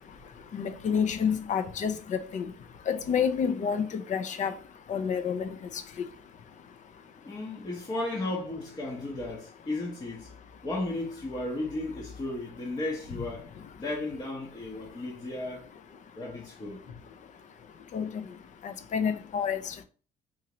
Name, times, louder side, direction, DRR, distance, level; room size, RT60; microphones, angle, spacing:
voice 1, 0.5-2.5 2.9-4.5 4.9-5.5 17.9-18.1 18.6-19.7, left 7 dB, 45° left, 0.5 m, -29 dB
voice 2, 7.2-10.3 10.6-15.7 16.1-17.0, left 2 dB, 25° left, 0.8 m, -35 dB
3.8 x 2.8 x 2.9 m
cardioid pair, 110°, 17 cm